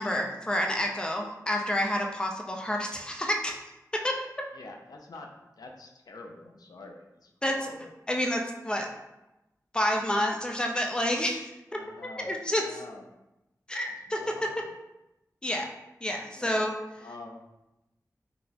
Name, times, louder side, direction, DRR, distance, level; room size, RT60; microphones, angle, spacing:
voice 1, 0.0-3.6 3.9-4.2 7.4-7.6 8.1-8.9 9.7-11.5 12.2-12.8 13.7-14.2 15.4-15.7 16.0-16.7, left 1 dB, 15° left, 1 dB, 0.4 m, -29 dB
voice 2, 4.5-5.3 5.6-7.9 11.7-13.0 14.1-14.7 16.4-17.4, left 2 dB, 85° left, 2 dB, 0.4 m, -46 dB
4.0 x 2.0 x 2.7 m, 0.95 s
wide cardioid pair, 80°, 6 cm